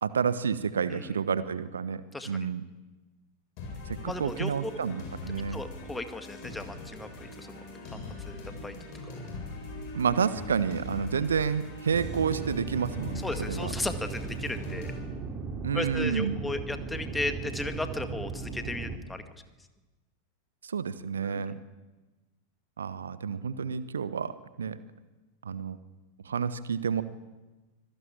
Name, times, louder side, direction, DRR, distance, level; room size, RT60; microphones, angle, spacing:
voice 1, 0.0-2.6 3.9-5.6 9.9-13.7 15.6-16.4 20.6-21.6 22.8-24.3 24.6-24.8 25.4-25.8 26.2-27.0, right 6 dB, 70° right, 15 dB, 1.1 m, -30 dB
voice 2, 2.1-2.5 4.0-4.7 5.5-7.6 7.9-8.8 9.0-9.2 13.2-14.9 15.7-19.2 21.2-21.5, left 2 dB, 5° left, 9 dB, 1.9 m, -36 dB
sound 1, 3.6-15.0, left 3 dB, 45° left, 7.9 m, -42 dB
sound 2, 11.9-19.0, right 4 dB, 30° right, 2.7 m, -37 dB
25.5 x 17.5 x 8.9 m, 1.2 s
figure-of-eight pair, 90°, 0 cm